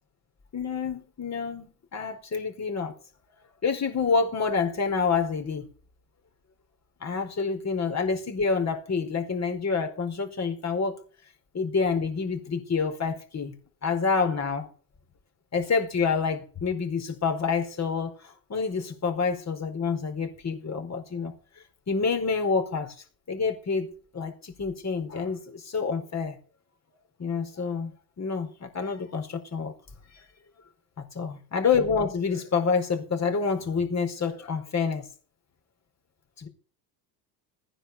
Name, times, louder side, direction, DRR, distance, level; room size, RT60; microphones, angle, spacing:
voice 1, 0.5-2.9 3.6-5.6 7.0-11.0 11.5-13.5 13.8-14.7 15.5-21.3 21.9-22.9 23.3-23.9 24.1-26.4 27.2-29.7 31.0-35.0 36.4-36.5, left 5 dB, 30° left, 5 dB, 4.7 m, -28 dB
15.5 x 10.0 x 6.8 m, 0.40 s
hypercardioid pair, 75°, 50 cm